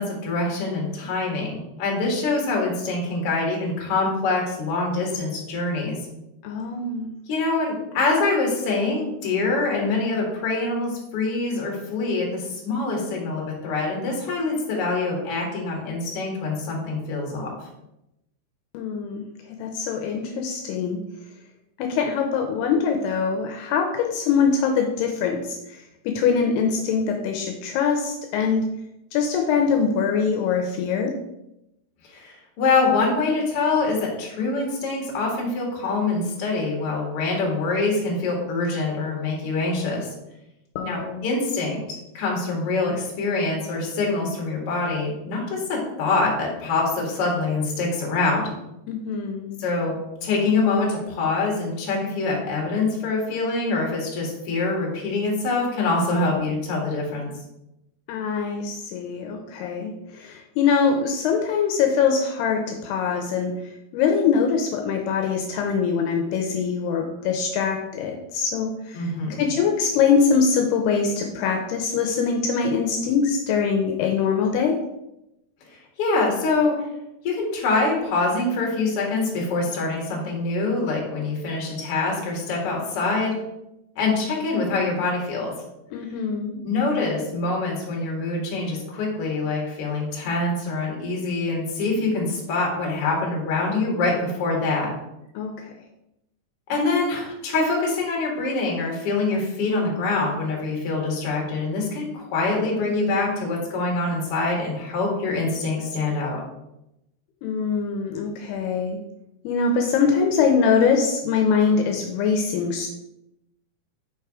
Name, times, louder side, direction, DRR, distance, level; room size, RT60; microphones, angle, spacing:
voice 1, 0.0-6.0 7.3-17.5 32.1-40.1 40.8-41.8 42.1-48.5 49.6-50.0 50.2-57.3 68.9-69.5 76.0-76.8 77.2-83.4 84.0-85.5 86.6-94.9 96.7-106.4, left 3 dB, 50° left, -2 dB, 1.9 m, -25 dB
voice 2, 6.4-7.1 18.7-21.0 21.8-28.6 29.1-31.1 40.8-41.3 48.9-49.6 58.1-63.6 63.9-69.1 69.4-74.8 85.9-86.6 95.4-95.7 107.4-109.0 109.4-112.9, left 6 dB, 80° left, 3 dB, 2.5 m, -23 dB
5.9 x 4.6 x 4.7 m, 0.88 s
omnidirectional pair, 4.8 m